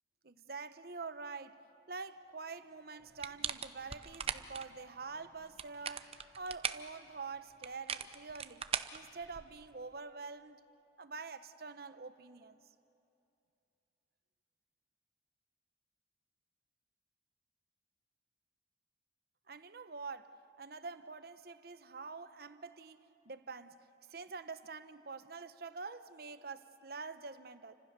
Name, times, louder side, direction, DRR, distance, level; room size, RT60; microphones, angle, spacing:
voice 1, 0.2-1.6 1.9-8.7 8.9-10.6 11.0-12.6 19.5-27.7, right 4 dB, 55° right, 0.9 m, -46 dB
sound 1, 3.2-4.7 5.4-6.9 7.6-9.6, right 7 dB, 35° right, 0.7 m, -39 dB
30.0 x 25.5 x 6.8 m
head